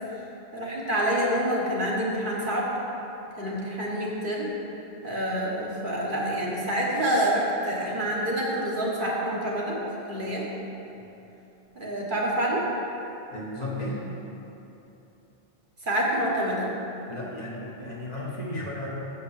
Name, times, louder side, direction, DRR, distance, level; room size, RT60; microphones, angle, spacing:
voice 1, 0.5-2.7 3.4-4.5 5.0-9.8 10.1-10.4 11.7-12.7 15.8-16.7, equal, 50° right, -4 dB, 1.4 m, -27 dB
voice 2, 13.3-14.0 17.1-18.9, left 1 dB, 40° left, -5 dB, 1.2 m, -34 dB
6.5 x 5.6 x 7.1 m, 2.9 s
omnidirectional pair, 1.1 m